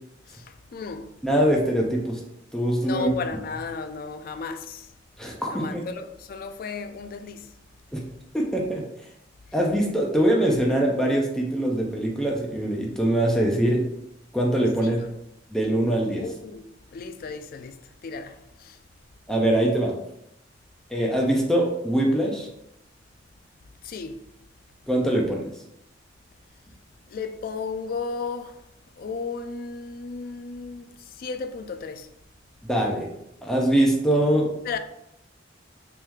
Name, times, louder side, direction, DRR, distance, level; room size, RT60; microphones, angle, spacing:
voice 1, 0.3-1.1 2.8-4.9 5.5-7.5 14.8-15.1 16.2-16.6 16.9-17.8 18.0-18.8 23.8-24.2 27.1-28.6 29.0-30.8 31.2-32.1 34.7-34.8, left 4 dB, 50° left, 0.3 m, -34 dB
voice 2, 1.2-2.2 2.5-3.1 5.2-5.8 7.9-8.0 8.3-8.8 9.5-13.8 14.3-15.0 15.5-16.2 19.3-20.0 20.9-22.5 24.9-25.5 32.6-33.1 33.4-34.5, right 1 dB, 5° left, 0.5 m, -23 dB
3.2 x 3.0 x 3.5 m
head